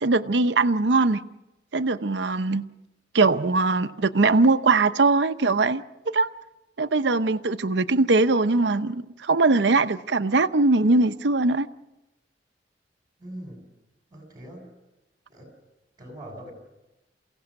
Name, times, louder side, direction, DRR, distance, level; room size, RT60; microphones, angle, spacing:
voice 1, 0.0-1.2 1.7-2.7 3.1-5.8 6.1-6.3 6.8-11.7, right 3 dB, 75° right, 0.7 m, -21 dB
voice 2, 13.2-13.6 14.1-14.7 15.3-15.5 16.0-16.5, right 1 dB, 20° right, 7.3 m, -41 dB
29.0 x 16.5 x 6.5 m
head